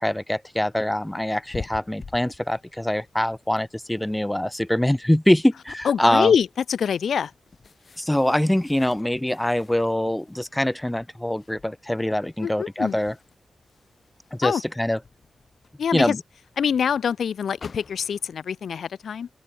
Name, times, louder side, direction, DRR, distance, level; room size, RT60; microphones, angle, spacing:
voice 1, 0.0-6.3 8.0-13.1 14.3-15.0 15.9-16.2, left 1 dB, 5° left, 0.7 m, -23 dB
sound 1, 0.6-18.3, left 4 dB, 40° left, 5.1 m, -49 dB
voice 2, 5.8-7.3 12.4-13.0 14.4-14.6 15.8-16.2 16.6-19.3, left 7 dB, 70° left, 0.5 m, -24 dB
open air
wide cardioid pair, 175°, 0 cm